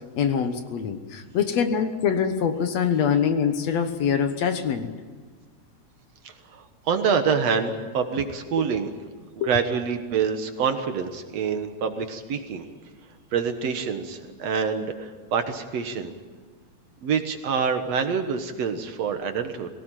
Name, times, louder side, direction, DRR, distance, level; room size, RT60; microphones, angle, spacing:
voice 1, 0.2-4.9 9.4-9.5, left 7 dB, 65° left, 8 dB, 2.3 m, -24 dB
voice 2, 6.2-8.9 9.4-12.6 13.3-16.1 17.0-19.7, right 6 dB, 60° right, 7 dB, 2.4 m, -26 dB
22.5 x 18.0 x 9.1 m, 1.5 s
omnidirectional pair, 3.5 m